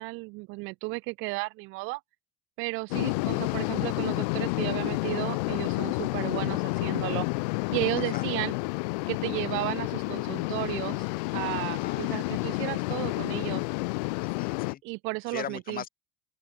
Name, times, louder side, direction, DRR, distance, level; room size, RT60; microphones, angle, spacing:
voice 1, 0.0-2.0 2.6-7.3 7.7-8.5 9.1-11.0 11.3-13.6 14.8-15.8, right 26 dB, 70° right, 1.5 m, -33 dB
sound 1, 2.9-14.7, left 26 dB, 85° left, 0.8 m, -30 dB
voice 2, 11.8-12.2 14.2-14.8 15.3-15.9, left 9 dB, 45° left, 3.7 m, -39 dB
open air
supercardioid pair, 90°, 21 cm